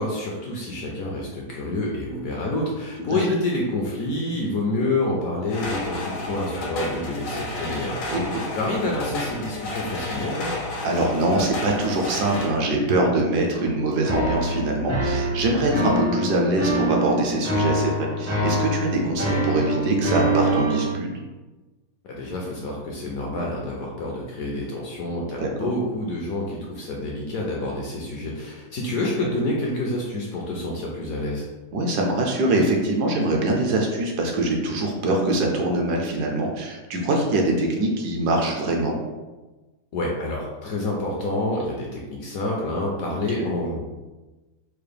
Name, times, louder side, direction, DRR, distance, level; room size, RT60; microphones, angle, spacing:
voice 1, 0.0-8.1 8.5-10.5 22.0-31.5 39.9-43.9, left 2 dB, 70° left, -2 dB, 0.9 m, -28 dB
sound 1, 5.5-12.5, left 2 dB, 85° left, 1.5 m, -31 dB
voice 2, 8.1-8.4 10.8-21.1 25.4-25.7 31.7-39.0 43.1-43.5, right 2 dB, 70° right, 1 dB, 1.1 m, -23 dB
sound 2, 14.1-20.9, right 1 dB, 20° right, 0.5 m, -25 dB
4.6 x 2.1 x 3.3 m, 1.2 s
omnidirectional pair, 1.9 m